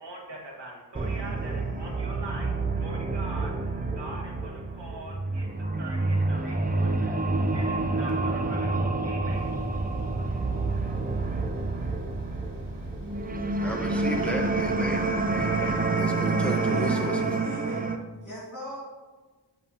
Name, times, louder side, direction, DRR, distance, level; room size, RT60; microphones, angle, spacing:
voice 1, 0.0-5.5 5.7-9.5, right 2 dB, 70° right, -2 dB, 1.8 m, -42 dB
sound 1, 1.0-18.0, right 3 dB, 20° right, 0.6 m, -28 dB
sound 2, 9.3-15.9, equal, 50° right, 2.0 m, -41 dB
voice 2, 13.6-17.1, equal, 5° left, 1 dB, 1.1 m, -33 dB
voice 3, 16.4-17.8 18.2-18.8, equal, 40° left, -10 dB, 2.3 m, -39 dB
7.3 x 7.3 x 2.8 m, 1.3 s
wide cardioid pair, 75°, 44 cm